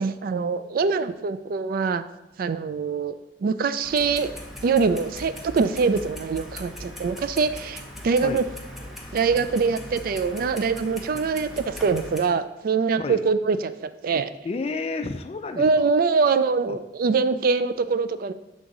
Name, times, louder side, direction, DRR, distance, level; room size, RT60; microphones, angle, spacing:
voice 1, 0.0-2.0 2.4-4.3 4.6-8.4 9.1-14.3 15.6-18.3, right 4 dB, 55° right, 13 dB, 0.3 m, -24 dB
Clock, 3.8-12.2, left 1 dB, ahead, 0.8 m, -40 dB
voice 2, 14.4-15.9 16.7-16.8, left 3 dB, 35° left, 8 dB, 0.3 m, -31 dB
7.0 x 3.8 x 3.7 m, 1.0 s
head